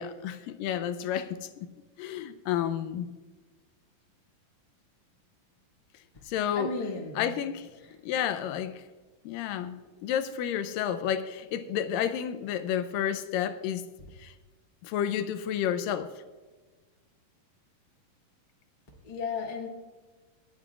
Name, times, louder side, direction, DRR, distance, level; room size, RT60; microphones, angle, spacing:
voice 1, 0.0-1.5 2.0-3.1 6.3-6.8 7.2-7.7 8.0-8.7 9.3-13.8 14.2-14.3 14.8-16.1, left 9 dB, 80° left, 11 dB, 2.2 m, -31 dB
voice 2, 6.5-7.3 19.0-19.7, left 3 dB, 20° left, -3 dB, 1.6 m, -34 dB
28.0 x 10.5 x 2.4 m, 1.3 s
omnidirectional pair, 4.1 m